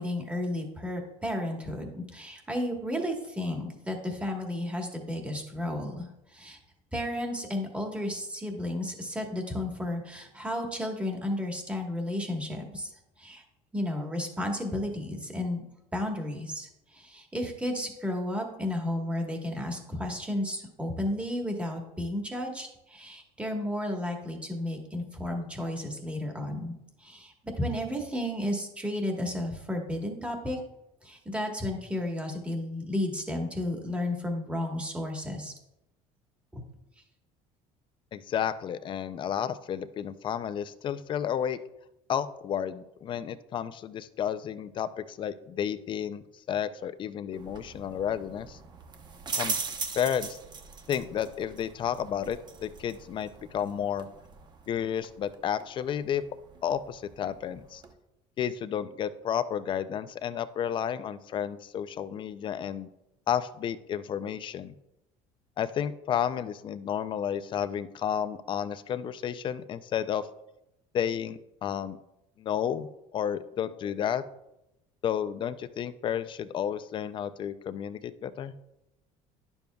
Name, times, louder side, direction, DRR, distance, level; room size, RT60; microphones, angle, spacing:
voice 1, 0.0-6.1 6.3-6.6 6.9-12.9 13.2-13.4 13.7-15.6 15.9-16.7 16.9-26.7 27.0-30.6 31.0-35.5 36.5-36.6, left 1 dB, 10° right, 2 dB, 1.3 m, -33 dB
voice 2, 38.1-41.6 42.1-46.2 46.5-48.6 49.4-49.6 49.9-50.4 50.9-54.1 54.7-56.2 56.6-57.8 58.4-62.9 63.3-64.7 65.6-70.3 70.9-72.0 72.4-74.2 75.0-78.5, left 9 dB, 35° left, 13 dB, 0.4 m, -31 dB
sound 1, 47.3-57.9, right 4 dB, 30° right, 0.8 m, -40 dB
10.5 x 7.0 x 2.3 m, 0.89 s
cardioid pair, 130°, 14 cm